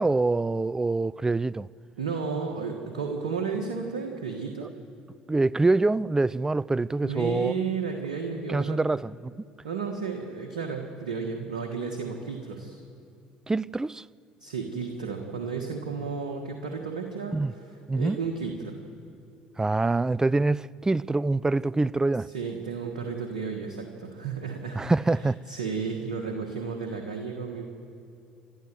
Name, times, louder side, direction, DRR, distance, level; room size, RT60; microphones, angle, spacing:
voice 1, 0.0-1.7 4.6-4.7 5.3-7.5 8.5-9.3 13.5-14.0 17.3-17.5 17.9-18.2 19.6-22.3 24.8-25.4, right 3 dB, 15° right, 0.4 m, -25 dB
voice 2, 2.0-4.7 7.0-8.9 9.6-12.8 14.4-18.8 22.3-24.8 25.5-27.7, right 5 dB, 80° right, 1.5 m, -33 dB
29.5 x 12.5 x 7.7 m
hypercardioid pair, 60°, 4 cm